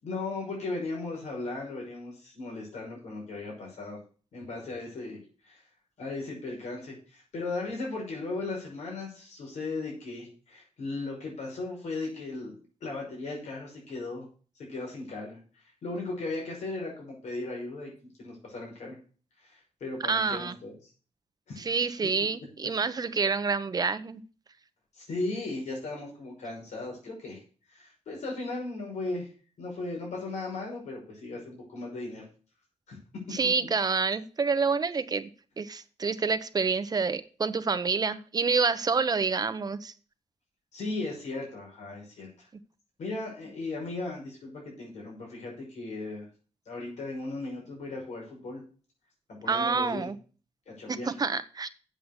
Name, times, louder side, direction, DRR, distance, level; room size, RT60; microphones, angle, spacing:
voice 1, 0.0-4.0 4.3-5.2 5.4-5.6 6.0-12.5 12.8-14.3 14.6-15.4 15.8-19.0 19.4-20.7 21.5-21.7 24.9-27.4 27.7-29.3 29.6-32.2 32.9-33.0 40.7-42.5 43.0-46.3 46.7-48.6 49.3-50.1 50.7-51.1, left 2 dB, 80° left, -2 dB, 5.9 m, -37 dB
voice 2, 20.0-20.5 21.6-24.2 33.3-35.3 35.6-39.9 49.5-50.1 50.9-51.7, right 5 dB, 35° right, 12 dB, 0.9 m, -28 dB
8.1 x 7.7 x 6.9 m, 0.38 s
wide cardioid pair, 130°, 12 cm